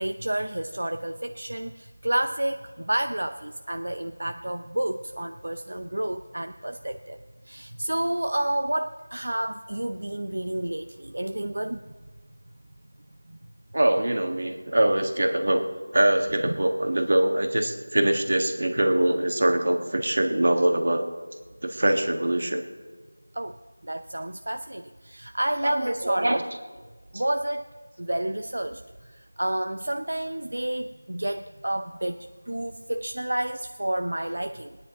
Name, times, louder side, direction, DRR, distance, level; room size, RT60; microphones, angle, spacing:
voice 1, 0.0-7.2 7.5-11.8 16.4-16.6 23.3-23.6 23.8-26.4 27.1-27.7 28.0-34.8, right 1 dB, 70° right, 8 dB, 0.6 m, -30 dB
voice 2, 13.7-21.0 21.6-22.6 25.6-26.4, right 1 dB, 55° right, 5 dB, 1.5 m, -23 dB
21.5 x 9.9 x 3.7 m, 1.4 s
figure-of-eight pair, 175°, 0 cm